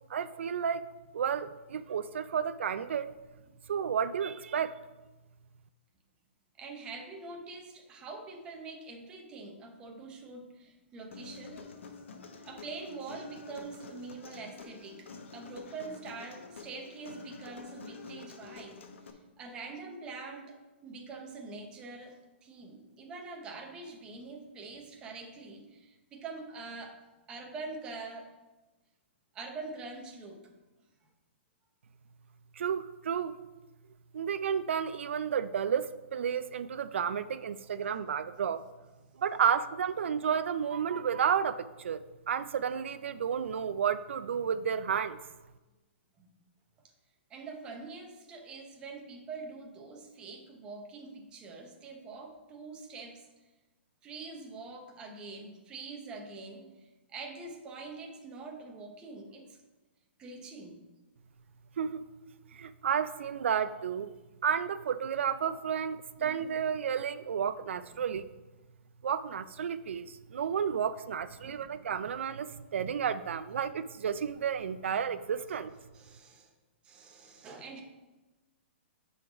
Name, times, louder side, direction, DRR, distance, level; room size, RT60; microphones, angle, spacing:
voice 1, 0.1-0.8 1.1-3.1 3.7-4.7 32.6-33.4 34.1-38.6 39.2-45.2 61.8-62.0 62.5-64.1 64.4-68.3 69.0-75.7, right 7 dB, 85° right, 13 dB, 0.4 m, -31 dB
voice 2, 6.6-11.6 12.4-15.1 15.3-18.8 19.1-20.6 20.8-22.2 22.4-27.0 27.3-28.3 29.3-30.5 46.2-46.3 47.3-53.3 54.0-59.6 60.2-60.8 66.2-66.5 71.4-72.1 75.9-76.5 76.8-77.8, right 3 dB, 15° right, 2 dB, 0.7 m, -44 dB
Human voice, 11.1-19.1, left 4 dB, 90° left, 0.9 m, -48 dB
7.5 x 4.0 x 5.0 m, 1.1 s
hypercardioid pair, 170°, 6 cm